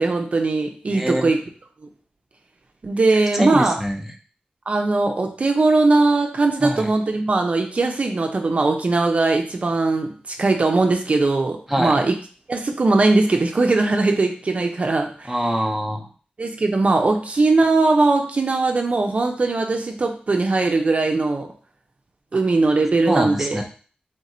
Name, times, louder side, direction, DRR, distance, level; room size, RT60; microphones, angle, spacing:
voice 1, 0.0-1.4 2.8-3.7 4.7-10.1 10.4-12.1 12.5-15.3 16.4-21.5 22.3-23.6, right 3 dB, 50° right, 3 dB, 0.6 m, -20 dB
voice 2, 0.9-1.3 3.3-4.0 6.6-6.9 11.7-12.0 15.3-16.1 22.3-22.4 23.1-23.6, equal, 5° right, 0 dB, 0.6 m, -24 dB
3.6 x 2.5 x 4.2 m, 0.40 s
wide cardioid pair, 100°, 3 cm